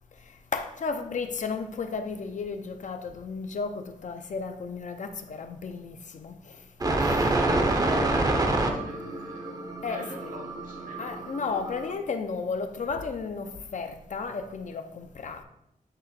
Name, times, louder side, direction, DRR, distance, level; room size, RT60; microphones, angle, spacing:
voice 1, 0.5-6.6 7.0-7.2 9.8-10.1 11.0-15.4, left 4 dB, 55° left, 0.6 m, -33 dB
sound 1, 6.8-11.9, right 2 dB, 25° right, 0.6 m, -27 dB
voice 2, 7.7-11.3, right 1 dB, 75° right, 1.7 m, -43 dB
8.9 x 3.0 x 4.3 m
wide cardioid pair, 155°, 15 cm